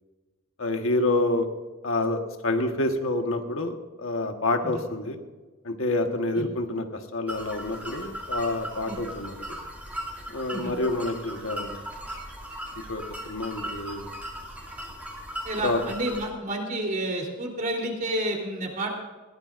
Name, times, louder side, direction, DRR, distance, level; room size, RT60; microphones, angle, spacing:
voice 1, 0.6-1.5 1.8-5.2 5.6-9.6 10.3-11.8 12.9-14.1 15.6-15.8, left 2 dB, 70° left, 5 dB, 1.5 m, -28 dB
sound 1, 7.3-16.3, equal, 5° right, 3.2 m, -38 dB
voice 2, 15.5-18.9, right 1 dB, 40° right, 0 dB, 3.6 m, -30 dB
20.5 x 17.0 x 2.6 m, 1.3 s
head